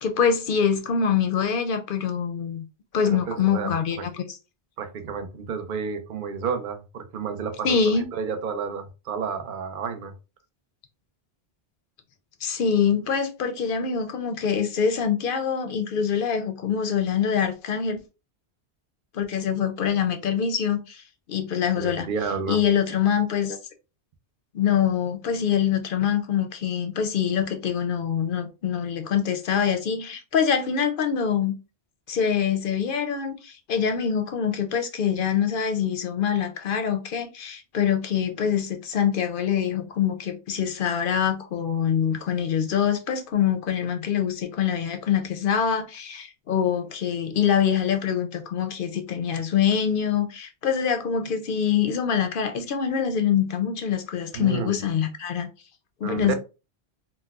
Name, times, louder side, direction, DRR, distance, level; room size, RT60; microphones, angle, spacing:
voice 1, 0.0-2.6 2.9-4.4 7.6-8.1 12.4-18.0 19.1-21.0 21.3-22.1 22.5-23.6 24.5-31.5 32.1-55.5 56.0-56.3, left 7 dB, 60° left, 0.6 m, -24 dB
voice 2, 3.0-3.7 4.8-10.1 21.8-22.6 54.3-54.8 56.0-56.3, right 6 dB, 55° right, 0.7 m, -31 dB
4.0 x 2.1 x 2.3 m
omnidirectional pair, 1.1 m